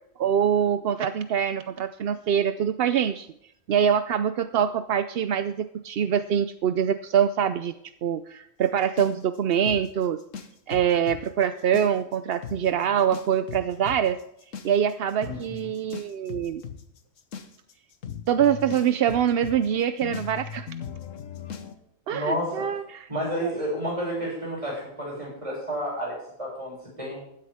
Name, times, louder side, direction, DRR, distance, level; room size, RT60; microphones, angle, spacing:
voice 1, 0.2-3.3 3.7-7.7 8.0-10.2 10.7-14.2 14.6-16.6 18.3-20.7 22.1-23.0 23.4-23.5, right 8 dB, 60° right, 11 dB, 0.7 m, -24 dB
sound 1, 9.0-11.2 11.6-12.2 12.4-12.6 13.1-21.7, left 7 dB, 70° left, 1.4 m, -38 dB
voice 2, 15.2-15.7 22.1-22.7 23.1-27.2, equal, 25° right, -3 dB, 7.0 m, -31 dB
16.0 x 12.0 x 3.6 m, 0.74 s
omnidirectional pair, 1.4 m